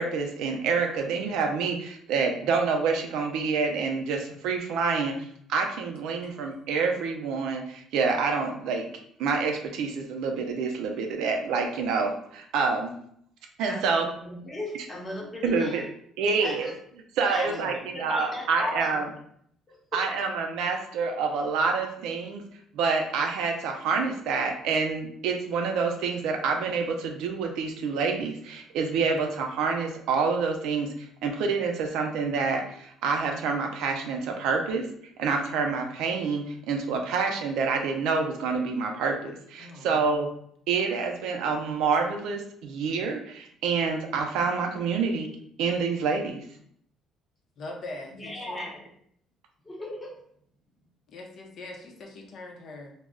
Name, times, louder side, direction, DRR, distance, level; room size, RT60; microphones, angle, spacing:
voice 1, 0.0-5.2 5.5-8.9 9.2-12.9 13.6-14.1 15.4-15.8 16.2-16.7 17.2-19.1 19.9-22.4 22.7-34.8 35.2-40.3 40.7-45.3 45.6-46.4, right 4 dB, 80° right, 3 dB, 0.4 m, -27 dB
voice 2, 13.7-15.8 16.4-16.7 17.2-19.1 19.7-20.1 48.1-48.9 49.6-50.2, left 1 dB, 15° left, -1 dB, 0.7 m, -37 dB
voice 3, 17.4-17.8 39.6-40.1 47.6-48.6 51.1-52.9, left 2 dB, 55° left, 3 dB, 0.5 m, -41 dB
2.3 x 2.0 x 3.5 m, 0.66 s
cardioid pair, 115°, 0 cm